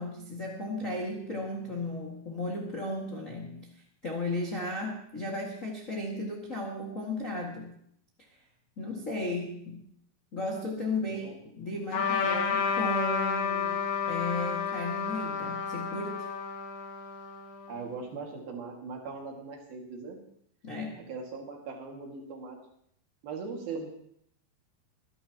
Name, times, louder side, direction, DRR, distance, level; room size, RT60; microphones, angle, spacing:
voice 1, 0.0-3.7 4.0-7.7 8.8-9.9 10.3-11.3 11.6-16.3 20.6-21.1, left 2 dB, 90° left, -3 dB, 0.7 m, -35 dB
voice 2, 11.0-11.3 17.7-20.2 21.1-22.6 23.2-23.9, right 4 dB, 60° right, 1 dB, 3.7 m, -40 dB
Trumpet, 11.9-17.8, left 6 dB, 70° left, 3.7 m, -31 dB
25.5 x 11.0 x 2.9 m, 0.70 s
omnidirectional pair, 5.0 m